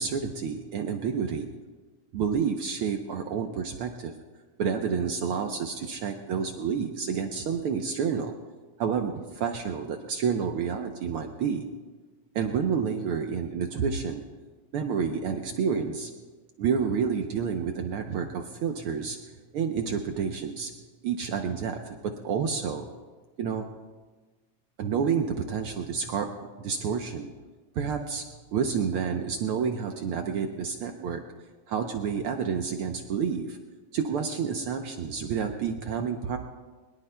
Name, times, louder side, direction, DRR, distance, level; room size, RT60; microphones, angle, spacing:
voice 1, 0.0-1.5 2.1-4.1 4.6-8.3 8.8-11.7 12.3-14.2 14.7-16.1 16.6-19.2 19.5-20.7 21.0-22.9 23.4-23.6 24.8-27.3 27.7-28.2 28.5-31.2 31.7-33.6 33.9-36.4, right 6 dB, 75° right, 4 dB, 1.2 m, -29 dB
22.0 x 21.0 x 2.2 m, 1.3 s
omnidirectional pair, 3.4 m